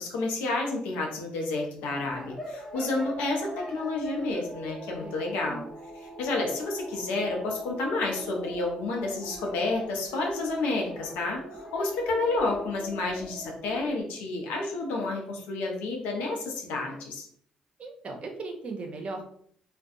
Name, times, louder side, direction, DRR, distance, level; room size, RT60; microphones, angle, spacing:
voice 1, 0.0-5.6 6.0-17.3, left 2 dB, 85° left, 0 dB, 0.6 m, -30 dB
sound 1, 2.1-14.0, equal, 10° left, 0.9 m, -42 dB
voice 2, 5.0-5.7 17.8-19.2, right 3 dB, 50° right, 3 dB, 0.6 m, -38 dB
2.5 x 2.2 x 2.6 m, 0.63 s
supercardioid pair, 65°, 3 cm